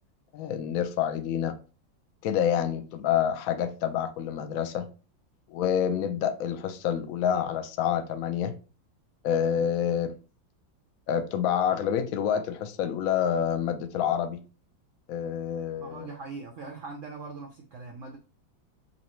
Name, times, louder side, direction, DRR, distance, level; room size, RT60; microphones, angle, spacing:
voice 1, 0.3-1.6 2.2-4.9 5.5-8.5 9.2-10.1 11.1-14.4 15.1-16.1, left 9 dB, 85° left, 0.7 m, -27 dB
voice 2, 15.8-18.2, right 4 dB, 85° right, 0.6 m, -41 dB
4.0 x 2.7 x 4.3 m
omnidirectional pair, 2.2 m